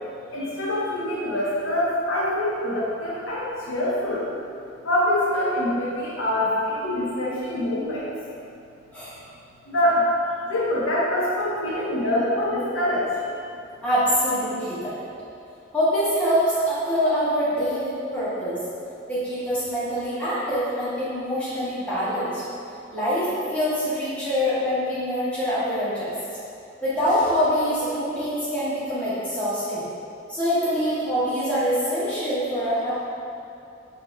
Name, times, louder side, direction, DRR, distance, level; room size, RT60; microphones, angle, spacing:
voice 1, 0.3-4.3 4.8-8.0 9.7-10.1 10.5-13.1, left 1 dB, 85° left, -8 dB, 1.1 m, -24 dB
voice 2, 13.8-14.9 15.7-18.6 19.1-22.4 22.9-26.1 26.8-29.8 30.3-33.0, equal, 5° left, -13 dB, 1.3 m, -24 dB
5.9 x 3.0 x 2.3 m, 2.6 s
head